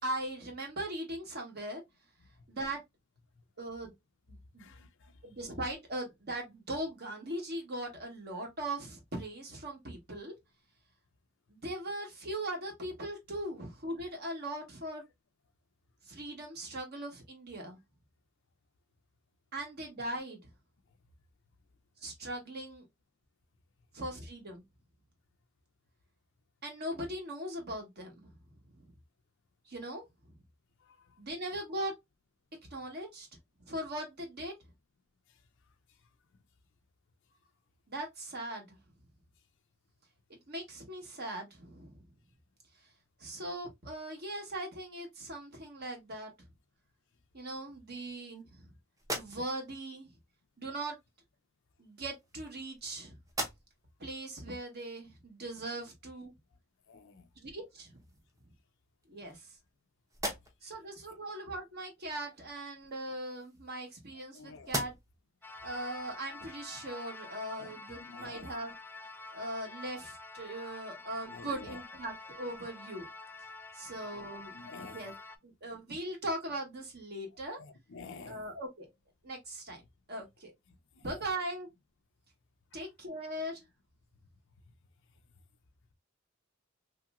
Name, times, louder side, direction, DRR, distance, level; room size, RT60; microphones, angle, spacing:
voice 1, 0.0-1.8 2.5-2.8 3.6-3.9 4.5-4.7 5.2-10.3 11.5-15.0 16.0-17.8 19.5-20.4 22.0-22.9 23.9-24.6 26.6-28.3 28.8-28.9 29.7-30.0 31.2-31.9 32.7-33.3 33.6-34.5 37.9-38.8 40.5-42.0 43.2-46.3 47.3-48.7 49.1-50.1 50.6-51.0 51.8-53.2 54.0-56.3 57.4-57.9 59.1-59.5 60.6-64.9 65.6-68.7 69.3-73.1 73.7-74.5 74.8-75.1 75.4-77.6 78.2-78.9 79.2-79.8 80.1-80.5 81.0-81.7 82.7-83.7, right 1 dB, 50° right, 1.3 m, -39 dB
voice 2, 4.6-5.2 30.8-31.2 56.9-57.3 64.3-64.8 67.5-68.6 71.3-71.8 73.8-74.2 74.5-75.1 77.6-78.4 80.7-81.0 82.7-82.8, left 4 dB, 60° left, 0.5 m, -51 dB
sound 1, 49.0-49.8 50.9-51.1 52.0-52.9 53.2-54.0 54.5-54.6 57.2-57.3 57.8-58.5 59.0-59.8 60.1-60.8 62.8-64.3 64.6-65.3, right 1 dB, 15° right, 0.8 m, -41 dB
sound 2, 65.4-75.4, left 3 dB, 10° left, 0.3 m, -48 dB
3.1 x 2.9 x 2.4 m
head